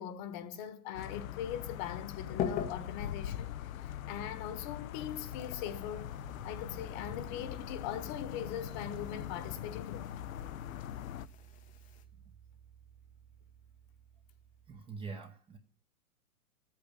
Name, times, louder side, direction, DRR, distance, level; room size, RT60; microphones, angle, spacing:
voice 1, 0.0-3.5 3.8-6.1 6.4-10.1, left 9 dB, 35° left, 1.4 m, -41 dB
sound 1, 0.9-11.3, left 11 dB, 70° left, 0.8 m, -42 dB
sound 2, 2.0-12.0, left 8 dB, 20° left, 0.8 m, -45 dB
sound 3, 6.2-14.8, right 8 dB, 60° right, 2.5 m, -56 dB
voice 2, 14.7-15.6, right 4 dB, 10° right, 0.9 m, -44 dB
13.0 x 8.6 x 8.4 m
hypercardioid pair, 150°, 43 cm